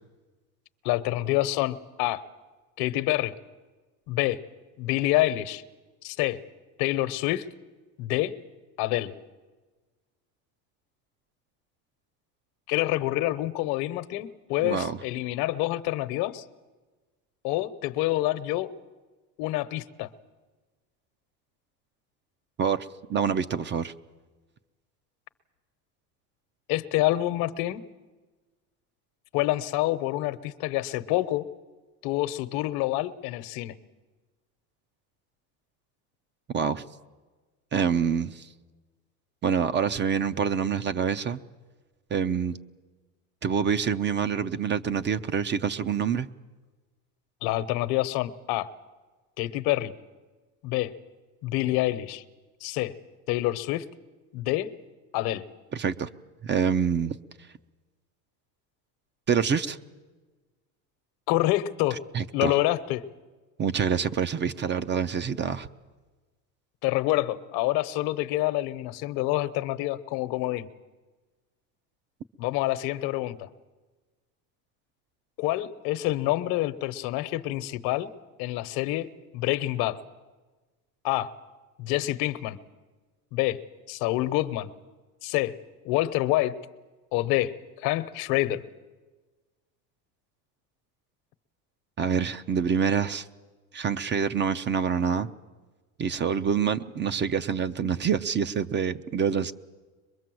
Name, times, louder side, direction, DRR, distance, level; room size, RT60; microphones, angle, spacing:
voice 1, 0.8-2.2 2.8-3.3 4.1-4.4 4.8-5.6 6.0-6.4 6.8-7.5 8.0-8.4 8.8-9.1 12.7-16.4 17.4-18.7 19.4-20.1 26.7-27.8 29.3-31.5 32.0-33.7 47.4-48.7 49.4-49.9 50.6-50.9 51.4-52.2 52.6-52.9 53.3-53.9 54.3-54.7 55.1-55.4 61.3-62.0 62.3-63.0 66.8-70.7 72.4-73.5 75.4-78.1 78.4-79.1 79.3-80.0 81.0-81.3 81.8-82.6 83.3-83.6 83.9-84.7 85.2-85.6 85.8-86.6 87.1-88.6, left 16 dB, 70° left, 14 dB, 1.1 m, -27 dB
voice 2, 14.6-15.0 22.6-23.9 36.5-36.8 37.7-38.5 39.4-41.4 42.1-42.5 43.4-46.3 55.7-56.1 56.4-57.2 59.3-59.8 62.1-62.6 63.6-65.7 92.0-93.3 93.7-95.3 96.0-99.5, right 7 dB, 25° right, 12 dB, 0.6 m, -26 dB
22.5 x 22.5 x 7.7 m, 1.3 s
cardioid pair, 125°, 40 cm